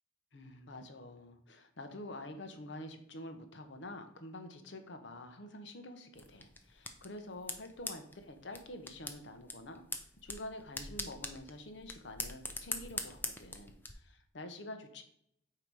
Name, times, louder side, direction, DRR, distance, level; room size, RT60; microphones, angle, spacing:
voice 1, 0.3-9.8 10.2-15.0, left 1 dB, 60° left, 7 dB, 0.8 m, -47 dB
sound 1, 6.1-13.9, left 3 dB, 10° left, 0.4 m, -44 dB
8.7 x 2.9 x 4.6 m, 0.70 s
head